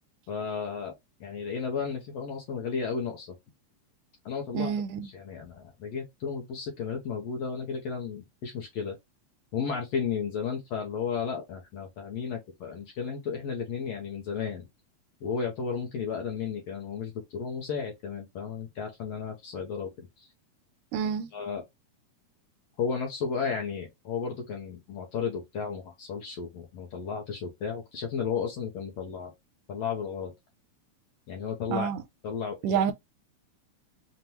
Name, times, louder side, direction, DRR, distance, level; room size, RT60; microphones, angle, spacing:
voice 1, 0.3-0.9 1.2-3.3 4.2-4.7 5.1-9.0 9.5-14.7 15.2-20.3 21.3-21.6 22.8-29.3 29.7-30.3 31.3-31.9 32.2-32.8, left 6 dB, 75° left, 1.6 m, -33 dB
voice 2, 4.5-5.1 20.9-21.3 31.7-32.0 32.6-32.9, right 8 dB, 85° right, 2.1 m, -28 dB
5.4 x 2.2 x 3.0 m
omnidirectional pair, 3.6 m